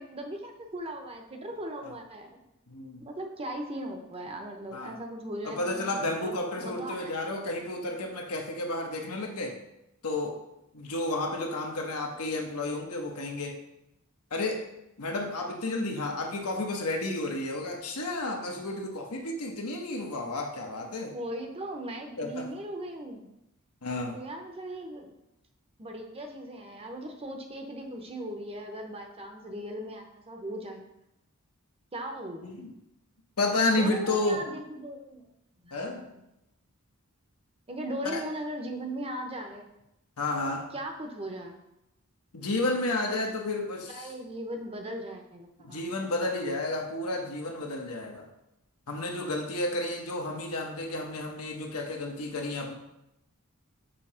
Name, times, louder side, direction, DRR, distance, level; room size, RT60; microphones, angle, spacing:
voice 1, 0.0-2.4 3.0-7.1 21.1-23.3 24.1-25.1 25.8-30.9 31.9-32.4 33.7-35.2 35.6-36.1 37.7-39.7 40.7-41.6 43.9-45.8, right 1 dB, 25° right, 4 dB, 0.8 m, -38 dB
voice 2, 2.7-3.0 4.7-5.0 5.4-9.5 10.0-10.4 10.7-13.6 14.3-14.7 15.0-21.1 22.2-22.5 23.8-24.2 32.4-32.7 33.4-34.4 35.7-36.1 38.0-38.2 40.2-40.7 42.3-44.1 45.6-48.3 48.9-52.7, left 2 dB, 85° left, 2 dB, 1.1 m, -31 dB
6.9 x 2.9 x 5.5 m, 0.86 s
head